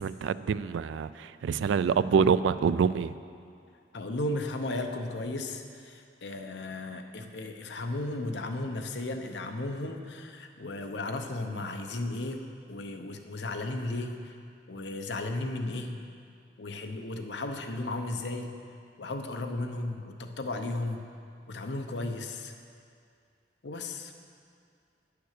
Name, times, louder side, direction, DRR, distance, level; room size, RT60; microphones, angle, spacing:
voice 1, 0.0-3.2, right 6 dB, 90° right, 15 dB, 0.3 m, -26 dB
voice 2, 3.9-14.3 14.7-15.9 16.6-18.5 19.0-21.0 21.5-22.5 23.6-24.1, left 2 dB, 70° left, 5 dB, 0.8 m, -35 dB
9.1 x 6.8 x 6.5 m, 2.3 s
head